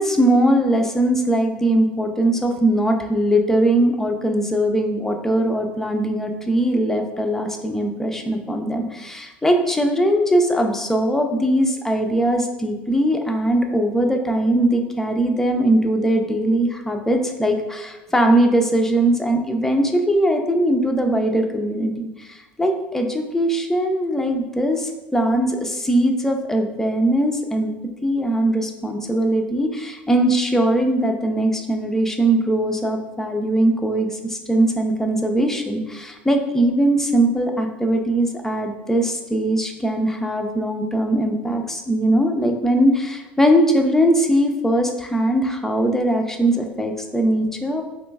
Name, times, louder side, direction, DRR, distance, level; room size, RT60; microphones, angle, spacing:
voice 1, 0.0-27.7 28.0-47.8, right 1 dB, 5° left, 3 dB, 0.5 m, -20 dB
3.1 x 2.9 x 3.4 m, 1.1 s
figure-of-eight pair, 70°, 6 cm